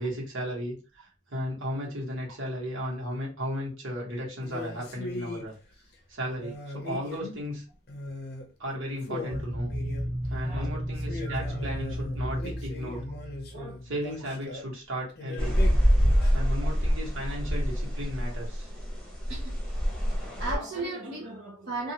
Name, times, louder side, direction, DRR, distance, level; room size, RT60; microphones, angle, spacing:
voice 1, 0.0-5.6 6.1-7.6 8.6-9.7 10.3-13.0 13.8-15.6 16.3-18.7, equal, 75° right, 1.4 m, -35 dB
sound 1, 4.4-5.5 6.4-7.5 7.9-8.5 8.7-8.8 9.0-10.3 11.0-14.7 15.1-16.5, left 2 dB, 50° left, 0.6 m, -39 dB
sound 2, 9.3-14.0, equal, 15° right, 0.3 m, -33 dB
voice 2, 10.4-10.8 11.2-11.6 13.5-13.8 15.8-16.7 19.3-19.6 20.1-21.9, right 2 dB, 55° right, 0.9 m, -38 dB
sound 3, 15.4-20.5, equal, 5° left, 0.9 m, -26 dB
2.6 x 2.4 x 2.9 m
head